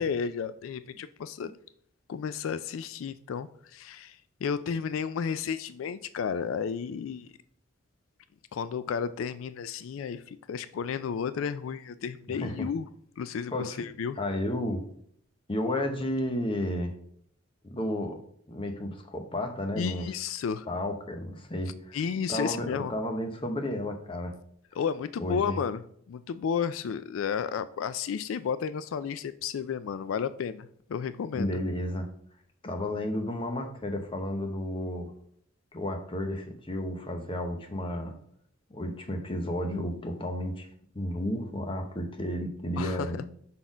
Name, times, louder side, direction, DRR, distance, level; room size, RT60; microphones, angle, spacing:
voice 1, 0.0-1.5 2.1-7.3 8.5-12.9 13.2-14.2 19.8-20.7 21.9-22.9 24.7-25.8 26.1-31.6 42.8-43.3, left 6 dB, 90° left, 0.3 m, -32 dB
voice 2, 12.3-12.7 13.5-13.8 14.2-14.8 15.5-16.9 17.6-18.2 18.5-20.1 20.7-22.0 22.3-24.3 25.2-25.6 31.3-32.1 32.6-35.1 35.7-38.2 38.7-40.7 40.9-43.2, left 1 dB, 25° left, 0.8 m, -32 dB
5.7 x 4.1 x 5.0 m
head